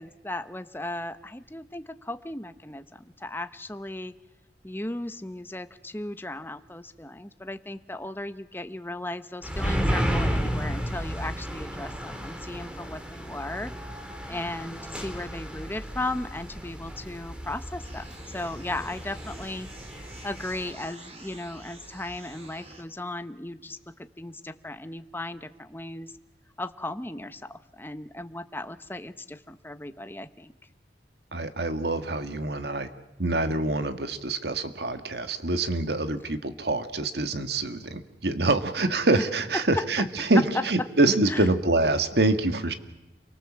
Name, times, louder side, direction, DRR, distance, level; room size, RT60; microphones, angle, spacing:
voice 1, 0.0-4.2 4.6-13.7 14.3-19.7 20.2-26.1 26.6-30.5 39.5-39.9 40.5-40.6 41.3-41.5, left 1 dB, 10° left, 10 dB, 1.0 m, -36 dB
sound 1, 9.4-20.7, equal, 5° right, 2.4 m, -33 dB
sound 2, 17.8-22.8, right 1 dB, 35° right, 3.8 m, -47 dB
voice 2, 31.3-32.9 33.2-42.7, right 2 dB, 65° right, 9 dB, 1.9 m, -25 dB
29.0 x 24.0 x 7.5 m, 1.0 s
head